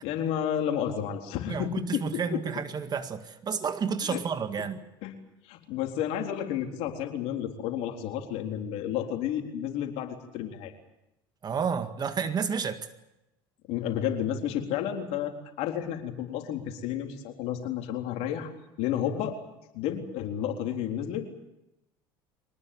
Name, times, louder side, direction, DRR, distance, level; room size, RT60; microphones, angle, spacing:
voice 1, 0.0-2.4 4.0-4.2 5.0-5.1 5.5-10.7 13.7-18.5 18.8-19.4 19.7-21.3, left 10 dB, 65° left, 3 dB, 3.9 m, -31 dB
voice 2, 1.5-4.8 11.4-12.9, right 6 dB, 35° right, 9 dB, 1.9 m, -31 dB
24.5 x 19.5 x 8.7 m, 0.91 s
hypercardioid pair, 80°, 12 cm